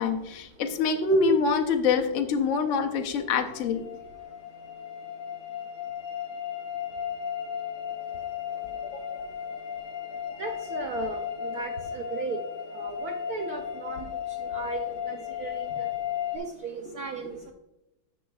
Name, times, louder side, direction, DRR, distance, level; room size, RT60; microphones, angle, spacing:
voice 1, 0.0-3.8 8.8-9.0, left 4 dB, 65° left, 5 dB, 0.7 m, -25 dB
sound 1, 3.2-16.4, left 9 dB, 85° left, 1.6 m, -35 dB
voice 2, 10.4-11.2 11.5-12.4 12.7-14.0 14.5-15.9 16.3-17.5, right 5 dB, 80° right, 4 dB, 0.8 m, -36 dB
10.0 x 6.3 x 2.3 m, 0.91 s
omnidirectional pair, 2.2 m